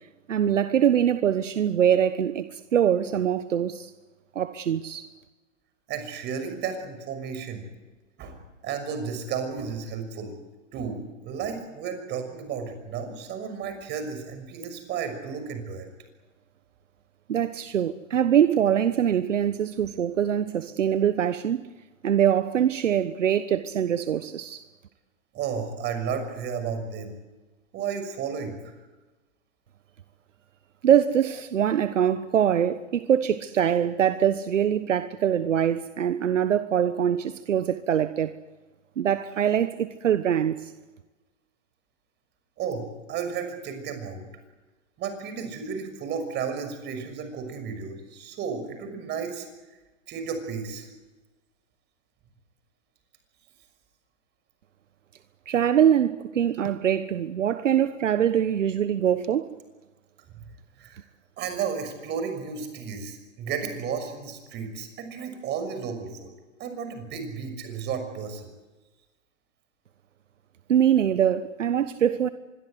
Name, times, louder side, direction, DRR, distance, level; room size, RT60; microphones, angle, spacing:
voice 1, 0.3-3.9 4.3-5.1 17.3-21.6 22.0-24.6 30.8-38.3 39.0-40.7 55.5-59.5 70.7-72.3, right 9 dB, 75° right, 1.3 m, -23 dB
voice 2, 5.9-7.7 8.2-8.4 8.6-10.3 10.7-15.9 25.3-27.1 27.7-28.7 42.6-44.2 45.0-49.5 50.1-50.9 60.3-60.4 60.8-61.0 61.4-66.3 66.6-68.5, right 6 dB, 25° right, 6.1 m, -33 dB
25.5 x 22.5 x 8.0 m
hypercardioid pair, 125°, 38 cm